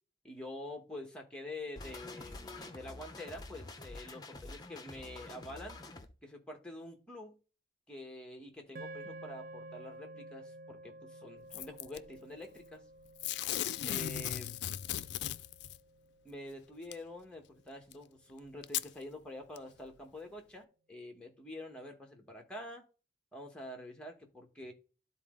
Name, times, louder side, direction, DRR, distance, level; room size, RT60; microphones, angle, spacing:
voice 1, 0.2-5.8 6.2-7.4 7.9-12.8 13.8-14.5 16.2-22.8 23.3-24.7, left 1 dB, 5° left, 2 dB, 1.4 m, -47 dB
sound 1, 1.8-6.1, left 2 dB, 20° left, 0.8 m, -48 dB
sound 2, 8.7-17.1, right 1 dB, 45° right, 0.5 m, -52 dB
Packing tape duct tape / Tearing, 11.5-12.0 13.2-15.8 16.9-17.0 17.9-18.0 18.6-18.9 19.6-19.7, left 11 dB, 75° left, 0.4 m, -36 dB
11.5 x 4.1 x 3.8 m, 0.34 s
head